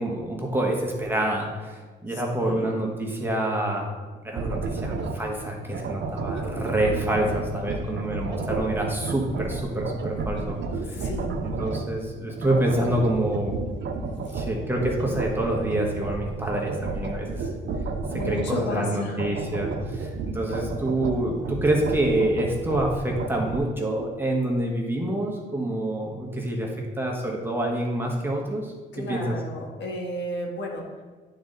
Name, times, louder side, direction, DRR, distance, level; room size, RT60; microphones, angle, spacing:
voice 1, 0.0-1.7 2.0-3.9 4.2-10.6 10.9-11.0 11.6-13.6 14.0-17.5 18.3-26.7 27.0-28.7 29.1-29.4, right 1 dB, 10° right, -1 dB, 1.4 m, -27 dB
voice 2, 2.1-2.7 10.9-11.3 18.1-19.4 28.9-31.0, left 1 dB, 65° left, 0 dB, 1.5 m, -33 dB
sound 1, 4.4-5.3 5.6-12.0 12.3-18.7 19.0-23.6, right 3 dB, 65° right, 0.8 m, -31 dB
9.4 x 4.0 x 3.9 m, 1.3 s
cardioid pair, 90°, 20 cm